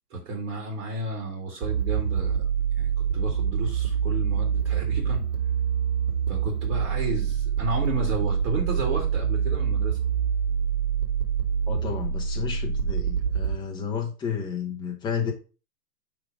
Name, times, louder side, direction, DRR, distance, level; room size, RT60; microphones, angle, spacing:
voice 1, 0.1-2.5 2.8-5.2 6.3-10.0, right 2 dB, 45° right, 2.2 m, -32 dB
sound 1, 1.6-13.5, right 7 dB, 65° right, 2.1 m, -26 dB
voice 2, 11.7-15.3, left 7 dB, 10° left, 0.9 m, -31 dB
4.9 x 3.8 x 5.2 m
figure-of-eight pair, 125°, 48 cm